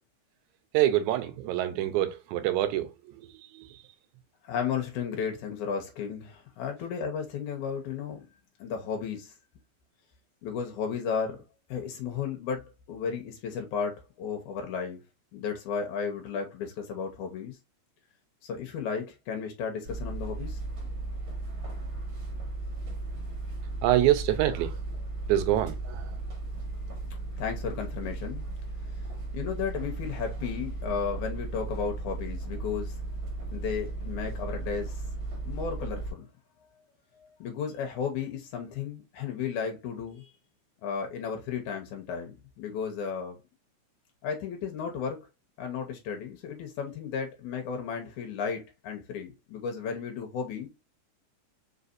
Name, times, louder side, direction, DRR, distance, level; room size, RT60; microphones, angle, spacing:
voice 1, 0.7-2.9 3.2-3.3 3.5-3.7 23.8-24.8 25.3-26.1, right 13 dB, 80° right, 2.0 m, -25 dB
voice 2, 4.4-8.2 8.6-9.3 10.4-11.4 11.7-15.0 15.3-17.6 18.4-20.6 27.3-28.5 29.3-33.0 33.5-35.0 35.5-36.3 37.2-40.3 40.8-43.4 44.2-45.2 45.6-50.7, left 6 dB, 80° left, 2.4 m, -34 dB
sound 1, 19.8-36.1, right 2 dB, 45° right, 2.1 m, -36 dB
4.9 x 4.0 x 2.6 m
omnidirectional pair, 3.5 m